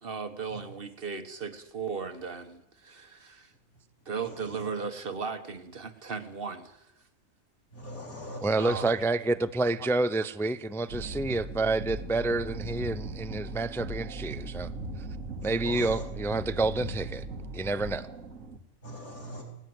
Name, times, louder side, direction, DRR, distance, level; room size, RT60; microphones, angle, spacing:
voice 1, 0.0-3.5 4.0-6.9 8.4-8.9 9.8-9.9, right 5 dB, 45° right, 1.6 m, -36 dB
voice 2, 4.2-4.6 7.7-8.9 15.4-16.0 18.8-19.4, equal, 90° left, 4.8 m, -42 dB
voice 3, 8.4-14.7 15.4-17.2 17.5-18.1, right 2 dB, 5° left, 0.4 m, -28 dB
sound 1, 10.9-18.6, right 2 dB, 70° right, 2.0 m, -38 dB
19.0 x 19.0 x 7.9 m
omnidirectional pair, 1.4 m